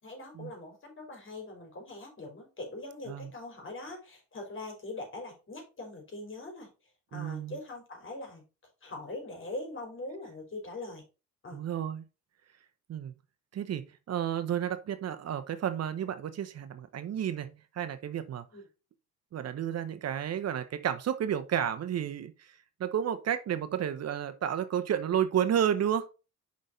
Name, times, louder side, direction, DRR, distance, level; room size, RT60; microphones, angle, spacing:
voice 1, 0.0-6.7 7.1-8.4 8.8-11.0 11.4-11.6 18.5-18.7, left 2 dB, 40° left, 3.8 m, -42 dB
voice 2, 7.1-7.6 11.5-12.0 12.9-13.1 13.5-18.5 19.3-22.5 22.8-26.1, right 9 dB, 55° right, 0.8 m, -31 dB
6.3 x 5.2 x 4.0 m
cardioid pair, 90°, 30 cm